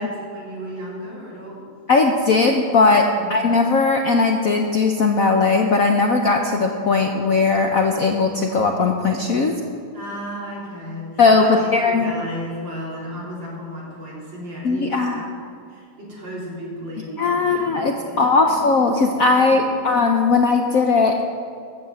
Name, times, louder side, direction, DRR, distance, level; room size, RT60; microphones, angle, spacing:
voice 1, 0.0-1.6 3.2-3.4 9.9-15.2 15.7-18.7 19.4-19.9, equal, 60° right, -5 dB, 4.3 m, -34 dB
voice 2, 1.9-9.5 11.2-12.1 14.6-15.3 17.2-21.2, left 4 dB, 60° left, 3 dB, 0.9 m, -18 dB
14.0 x 7.9 x 7.6 m, 2.4 s
omnidirectional pair, 2.3 m